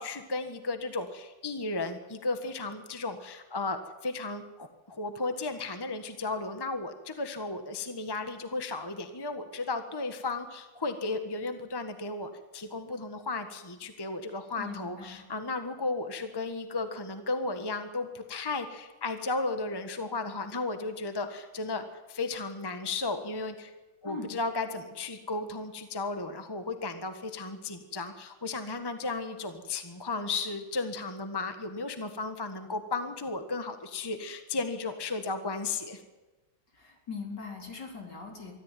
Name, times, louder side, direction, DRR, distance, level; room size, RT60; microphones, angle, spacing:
voice 1, 0.0-23.7 24.0-36.0, left 3 dB, 15° left, 8 dB, 1.4 m, -34 dB
voice 2, 14.6-15.2 24.0-24.3 36.7-38.5, left 4 dB, 60° left, 2 dB, 4.7 m, -40 dB
23.5 x 14.0 x 9.3 m, 1.1 s
omnidirectional pair, 2.1 m